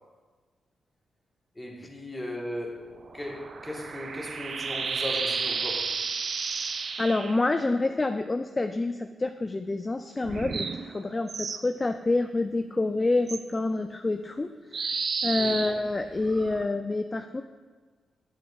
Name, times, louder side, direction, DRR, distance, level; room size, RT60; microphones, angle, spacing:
voice 1, 1.6-6.0 15.3-15.7, left 1 dB, 15° left, 0 dB, 1.3 m, -37 dB
sound 1, 2.9-7.4 10.2-11.6 13.3-13.4 14.7-16.7, right 5 dB, 60° right, 0.3 m, -32 dB
voice 2, 7.0-14.5 14.7-17.4, left 2 dB, 30° left, 7 dB, 0.3 m, -28 dB
7.7 x 7.3 x 2.3 m, 1.4 s
cardioid pair, 60°, 0 cm